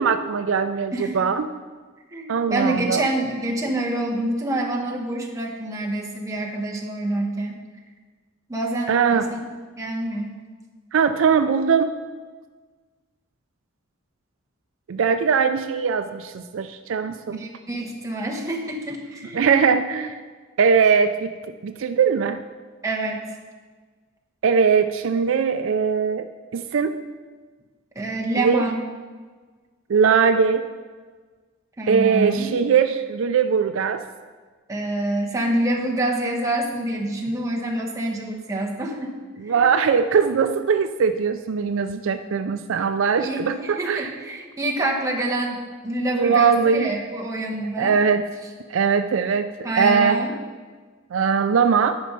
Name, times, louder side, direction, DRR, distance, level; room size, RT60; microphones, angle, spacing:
voice 1, 0.0-1.5 2.3-3.1 8.9-9.3 10.9-11.9 14.9-17.4 19.3-20.2 20.6-21.3 21.6-22.4 24.4-26.3 26.5-26.9 28.3-28.6 29.9-30.7 31.9-34.1 39.4-44.1 46.1-46.9 47.8-48.2 48.7-49.5 49.8-50.2 51.1-52.0, right 6 dB, 65° right, 9 dB, 0.4 m, -20 dB
voice 2, 0.9-1.3 2.1-7.6 8.5-9.4 9.8-10.3 17.3-19.6 22.8-23.2 27.9-28.8 31.8-32.5 34.7-39.1 39.5-39.8 43.2-48.0 49.6-50.3, right 1 dB, 15° right, -1 dB, 1.1 m, -27 dB
11.0 x 5.3 x 5.3 m, 1.4 s
head